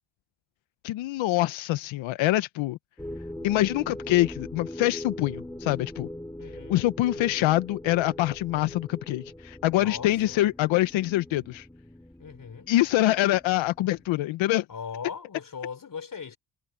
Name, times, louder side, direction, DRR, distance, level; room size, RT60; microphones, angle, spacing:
voice 1, 0.8-2.8 3.4-6.1 6.7-11.7 12.7-14.6, left 16 dB, 85° left, 0.9 m, -25 dB
sound 1, 3.0-14.1, left 1 dB, 5° left, 5.2 m, -41 dB
voice 2, 6.4-6.8 9.8-10.4 12.2-12.7 14.7-16.4, left 6 dB, 45° left, 4.2 m, -39 dB
cardioid pair, 70°, 46 cm